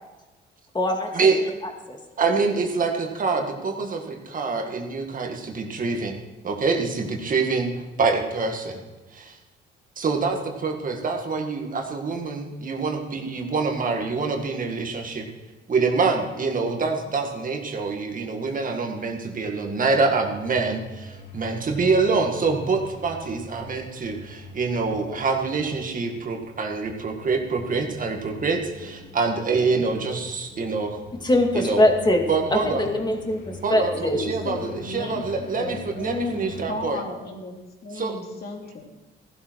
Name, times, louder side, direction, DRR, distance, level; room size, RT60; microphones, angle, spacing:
voice 1, 0.7-2.0 31.2-32.2 32.5-34.2, left 1 dB, 20° left, 3 dB, 2.4 m, -23 dB
voice 2, 2.2-7.7 8.0-8.8 9.1-9.4 10.0-15.3 15.7-31.0 31.6-31.8 32.3-32.8 33.6-37.0 37.9-38.2, right 4 dB, 40° right, 3 dB, 1.9 m, -25 dB
sound 1, 20.3-36.7, left 2 dB, 70° left, 3.2 m, -44 dB
voice 3, 34.0-35.2 35.5-37.5 37.8-38.8, left 3 dB, 50° left, 1 dB, 2.8 m, -34 dB
15.0 x 12.0 x 4.7 m, 1.1 s
cardioid pair, 100°, 20 cm